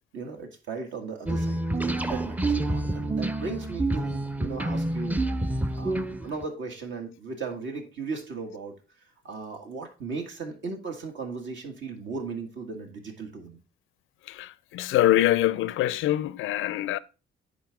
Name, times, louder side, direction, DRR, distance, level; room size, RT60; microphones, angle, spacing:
voice 1, 0.1-1.6 2.0-5.2 5.7-8.7 9.2-13.6, right 4 dB, 70° right, 1.8 m, -36 dB
sound 1, 1.3-6.4, right 2 dB, 10° right, 0.5 m, -28 dB
voice 2, 14.3-17.0, left 14 dB, 85° left, 0.5 m, -24 dB
10.0 x 4.1 x 3.4 m
cardioid pair, 90°, 20 cm